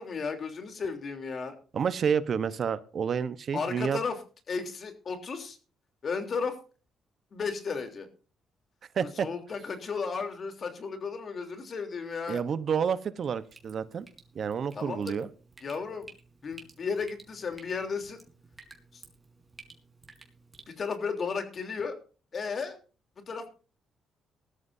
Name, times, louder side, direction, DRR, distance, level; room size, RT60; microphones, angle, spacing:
voice 1, 0.0-1.6 3.5-4.2 4.5-5.6 6.0-6.6 7.3-8.1 9.0-12.4 14.7-15.2 15.6-16.1 16.4-18.2 18.9-19.0 20.7-22.0 22.3-22.8 23.3-23.5, left 5 dB, 45° left, 6 dB, 3.4 m, -34 dB
voice 2, 1.7-4.0 8.9-9.3 12.3-14.1 14.3-15.3, right 7 dB, 55° right, 14 dB, 1.0 m, -29 dB
Drip, 13.2-20.7, right 3 dB, 25° right, 4.2 m, -54 dB
19.5 x 13.5 x 2.7 m, 0.36 s
cardioid pair, 90°, 0 cm